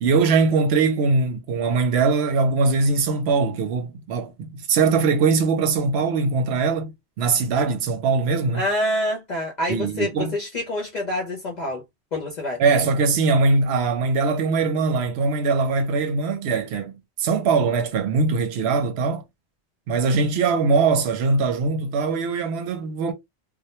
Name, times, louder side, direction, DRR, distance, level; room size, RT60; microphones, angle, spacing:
voice 1, 0.0-8.6 9.7-10.3 12.6-19.2 19.9-23.1, right 4 dB, 75° right, 0.8 m, -21 dB
voice 2, 8.5-11.8 12.1-12.6, left 1 dB, 50° left, 0.6 m, -26 dB
2.1 x 2.1 x 2.8 m
omnidirectional pair, 1.1 m